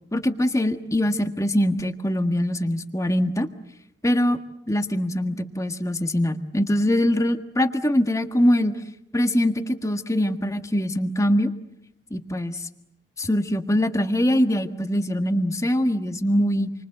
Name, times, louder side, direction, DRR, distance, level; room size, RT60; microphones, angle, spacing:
voice 1, 0.1-3.5 4.0-4.4 4.7-8.8 9.1-11.5 12.1-12.6 13.2-16.7, left 1 dB, 20° left, 8 dB, 1.6 m, -23 dB
29.0 x 24.5 x 7.9 m, 0.80 s
head